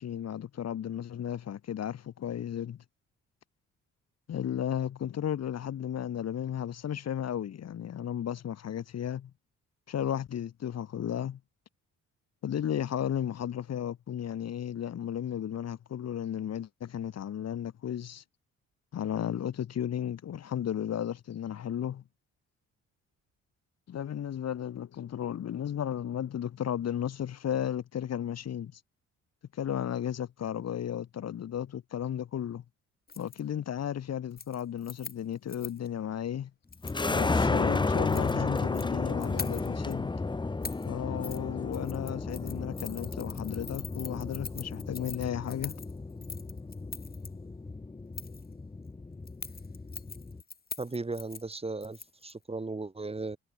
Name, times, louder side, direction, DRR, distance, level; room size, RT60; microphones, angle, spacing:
voice 1, 0.0-2.8 4.3-9.3 9.9-11.4 12.4-18.2 18.9-22.0 23.9-28.8 29.5-32.6 33.2-36.5 37.1-40.1 40.9-45.8, left 9 dB, 55° left, 1.9 m, -34 dB
Keys jangling, 33.1-33.4 33.8-34.0 34.3-35.9 36.7-37.1 37.9-38.9 39.2-39.9 40.6-40.9 41.2-41.4 41.7-47.3 48.1-48.5 49.3-52.3 52.6-52.7, left 5 dB, 30° left, 3.3 m, -43 dB
sound 1, 36.8-50.4, left 3 dB, 15° left, 0.9 m, -33 dB
voice 2, 50.8-53.4, right 3 dB, 20° right, 2.4 m, -36 dB
cardioid pair, 90°, 30 cm